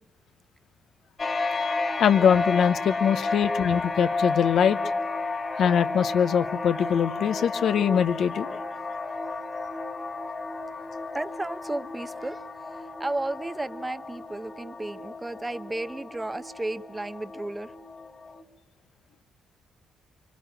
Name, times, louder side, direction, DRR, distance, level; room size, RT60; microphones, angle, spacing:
sound 1, 1.2-18.4, left 3 dB, 30° left, 1.4 m, -32 dB
voice 1, 2.0-4.8 5.6-8.5, left 8 dB, 65° left, 0.8 m, -22 dB
voice 2, 11.1-17.7, right 2 dB, 15° right, 0.9 m, -33 dB
25.0 x 23.5 x 9.0 m
cardioid pair, 90°, 0 cm